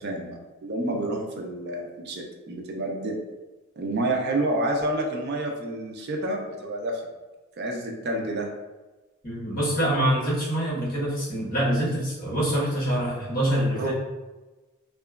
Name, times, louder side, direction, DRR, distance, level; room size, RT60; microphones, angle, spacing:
voice 1, 0.0-3.2 3.8-7.0 7.6-8.5 13.8-13.9, right 1 dB, 50° right, 1 dB, 0.5 m, -29 dB
voice 2, 9.2-13.9, right 1 dB, 45° left, -8 dB, 1.3 m, -25 dB
2.8 x 2.3 x 2.3 m, 1.1 s
head